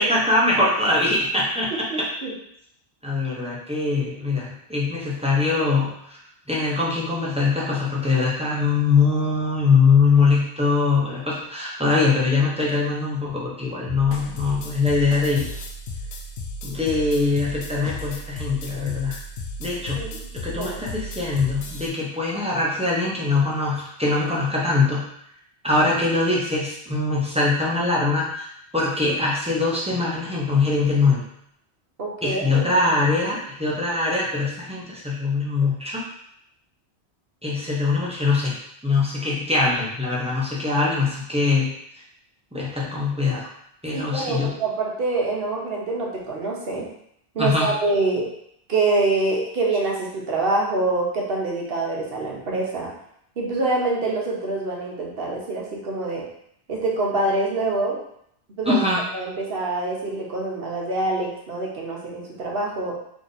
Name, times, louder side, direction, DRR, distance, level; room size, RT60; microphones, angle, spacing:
voice 1, 0.0-1.7 3.0-6.2 6.5-15.5 16.6-19.2 19.6-20.0 20.3-25.0 25.6-31.2 32.2-36.0 37.4-38.5 38.8-41.7 42.5-43.5 43.8-44.5 47.4-47.7 58.6-59.0, left 3 dB, 5° right, -6 dB, 0.8 m, -22 dB
voice 2, 1.9-2.3 19.9-20.3 20.5-20.8 32.0-32.6 43.9-46.9 47.3-48.3 48.7-52.9 53.4-56.2 56.7-58.0 58.6-58.9 59.1-62.9, right 2 dB, 65° right, -3 dB, 1.1 m, -25 dB
sound 1, 13.9-21.9, left 1 dB, 80° left, 0.9 m, -35 dB
3.5 x 2.8 x 4.0 m, 0.72 s
omnidirectional pair, 1.1 m